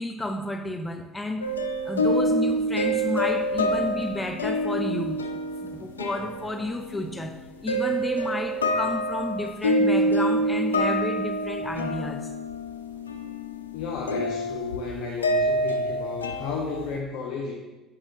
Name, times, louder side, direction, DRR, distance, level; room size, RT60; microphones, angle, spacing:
voice 1, 0.0-1.5 1.8-5.3 5.6-12.3, left 1 dB, 15° left, 5 dB, 0.8 m, -31 dB
sound 1, 1.4-7.3 7.7-16.9, equal, 90° left, 0.4 m, -27 dB
voice 2, 13.7-17.5, left 4 dB, 65° left, 0 dB, 0.8 m, -33 dB
7.3 x 4.9 x 2.9 m, 1.1 s
hypercardioid pair, 65°, 0 cm